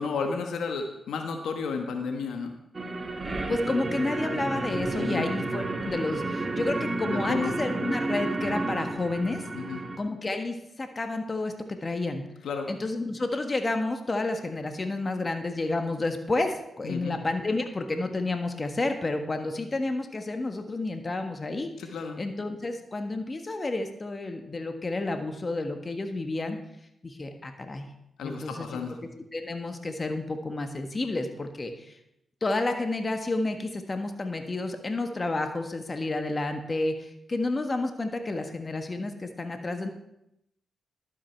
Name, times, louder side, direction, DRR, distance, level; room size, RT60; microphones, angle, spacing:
voice 1, 0.0-2.5 4.9-5.3 7.1-7.5 9.5-9.8 12.4-12.7 16.8-17.2 21.8-22.2 28.2-29.0, left 5 dB, 80° left, 5 dB, 1.1 m, -32 dB
sound 1, 2.7-10.0, right 2 dB, 40° right, 1.6 m, -31 dB
voice 2, 3.5-9.4 10.0-12.2 12.7-21.7 22.2-26.6 27.0-27.9 28.2-28.8 29.3-31.9 32.4-39.9, left 2 dB, 35° left, 6 dB, 1.4 m, -30 dB
12.0 x 8.5 x 4.5 m, 0.82 s
supercardioid pair, 55°, 0 cm